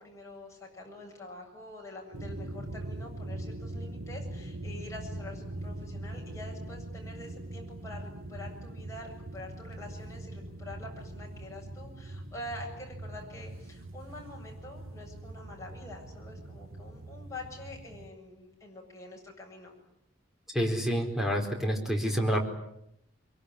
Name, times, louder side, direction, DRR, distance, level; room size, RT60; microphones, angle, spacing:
voice 1, 0.0-19.8, left 1 dB, 15° left, -1 dB, 7.8 m, -46 dB
sound 1, 2.1-18.1, right 1 dB, 90° right, 1.8 m, -42 dB
voice 2, 20.5-22.4, equal, ahead, 2 dB, 4.5 m, -28 dB
24.0 x 23.5 x 9.9 m, 0.79 s
head